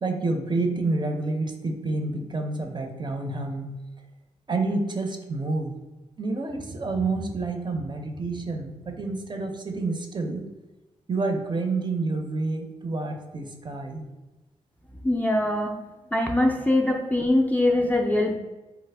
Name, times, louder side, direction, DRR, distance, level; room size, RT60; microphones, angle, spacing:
voice 1, 0.0-3.7 4.5-5.7 6.2-10.4 11.1-14.0, right 3 dB, 35° right, 3 dB, 0.6 m, -28 dB
voice 2, 15.0-15.7 16.1-18.4, left 1 dB, 10° left, 1 dB, 0.4 m, -22 dB
3.3 x 2.1 x 3.3 m, 1.1 s
cardioid pair, 65°, 13 cm